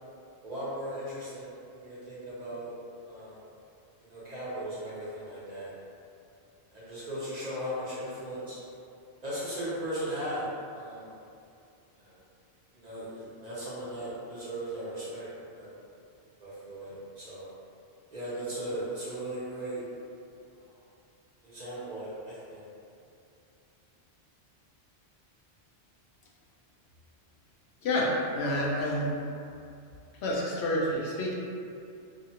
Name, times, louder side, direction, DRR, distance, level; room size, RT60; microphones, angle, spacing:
voice 1, 0.4-2.8 3.0-3.4 4.1-5.7 6.7-8.6 9.2-11.2 12.0-12.2 12.7-15.3 15.5-15.7 16.4-17.5 18.1-19.8 20.5-20.8 21.4-22.7, right 1 dB, 45° right, -10 dB, 0.7 m, -37 dB
voice 2, 27.8-29.1 30.2-31.3, left 1 dB, 75° left, -4 dB, 0.8 m, -28 dB
2.7 x 2.4 x 2.7 m, 2.6 s
omnidirectional pair, 1.1 m